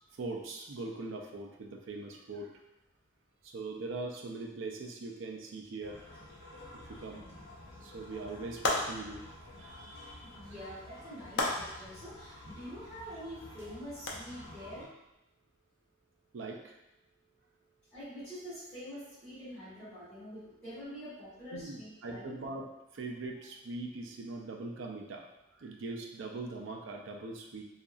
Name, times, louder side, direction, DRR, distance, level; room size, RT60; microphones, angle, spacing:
voice 1, 0.1-2.5 3.4-6.1 6.7-7.2 7.8-10.3 16.3-16.8 21.5-22.6 22.9-27.6, right 3 dB, 65° right, 1 dB, 0.4 m, -41 dB
sound 1, 5.8-14.9, left 1 dB, 80° left, 0.9 m, -51 dB
sound 2, 8.6-9.2 11.3-11.9 14.1-14.2, left 2 dB, 55° left, 0.4 m, -31 dB
voice 2, 10.2-14.9 17.9-22.4, equal, 5° left, -17 dB, 1.1 m, -46 dB
2.7 x 2.4 x 2.4 m, 0.91 s
head